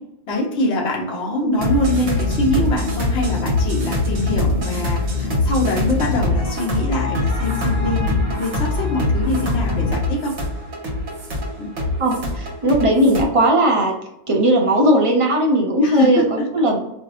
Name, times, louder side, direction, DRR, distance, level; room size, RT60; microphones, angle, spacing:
voice 1, 0.3-10.3 11.6-11.7 15.8-16.5, left 1 dB, 65° left, -2 dB, 1.2 m, -23 dB
sound 1, 1.6-13.2, left 2 dB, 85° right, 1.2 m, -23 dB
voice 2, 12.0-13.9 14.3-16.2 16.5-16.8, right 1 dB, 35° right, 0 dB, 0.7 m, -17 dB
4.4 x 2.1 x 2.7 m, 0.82 s
omnidirectional pair, 1.2 m